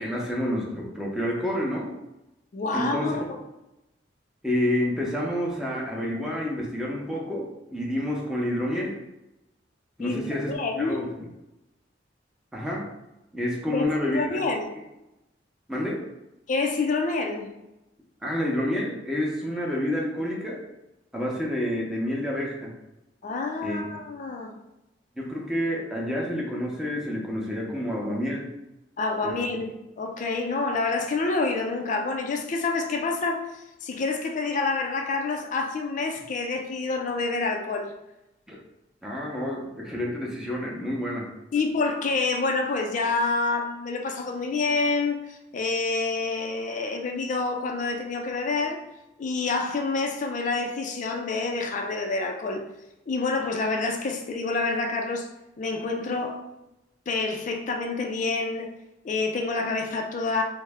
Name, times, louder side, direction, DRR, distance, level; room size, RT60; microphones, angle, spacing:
voice 1, 0.0-1.9 2.7-3.1 4.4-9.0 10.0-11.3 12.5-12.9 13.3-14.4 15.7-16.0 18.2-20.6 21.1-22.7 23.6-23.8 25.2-28.5 29.2-29.6 38.5-38.6 39.0-41.3, left 1 dB, 5° right, -3 dB, 0.6 m, -29 dB
voice 2, 2.5-3.2 10.0-11.0 13.7-13.9 14.1-14.6 16.5-17.5 23.2-24.5 29.0-29.7 30.0-37.9 41.5-48.8 49.2-52.6 53.1-55.3 55.6-56.4 57.1-58.7 59.0-60.4, left 3 dB, 40° left, 3 dB, 0.4 m, -27 dB
3.3 x 2.0 x 3.4 m, 0.93 s
head